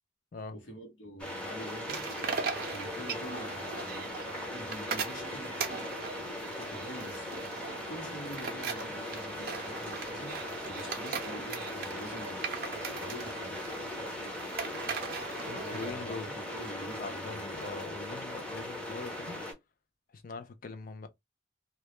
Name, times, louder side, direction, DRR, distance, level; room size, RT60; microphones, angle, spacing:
voice 1, 0.5-2.1 2.7-4.2 4.5-7.4 7.9-10.4 10.7-12.5 13.0-13.7 15.6-17.6, equal, 85° left, 0.9 m, -46 dB
sound 1, 1.2-19.5, left 1 dB, 5° left, 0.6 m, -39 dB
sound 2, 1.9-15.9, right 5 dB, 55° right, 0.5 m, -40 dB
voice 2, 15.5-16.3 17.0-19.4 20.1-21.1, left 3 dB, 50° left, 0.4 m, -42 dB
2.3 x 2.0 x 2.9 m
head